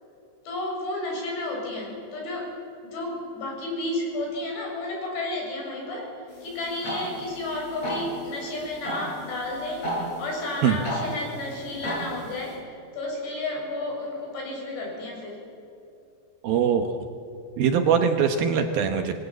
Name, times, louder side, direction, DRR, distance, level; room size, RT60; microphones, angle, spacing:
voice 1, 0.5-2.5 2.8-15.4, left 2 dB, 70° left, -1 dB, 9.5 m, -32 dB
sound 1, 6.3-12.5, equal, 35° left, 9.1 m, -35 dB
voice 2, 16.4-17.0 17.6-19.1, right 7 dB, 70° right, 6 dB, 2.6 m, -22 dB
27.0 x 23.0 x 8.2 m, 2.6 s
omnidirectional pair, 5.1 m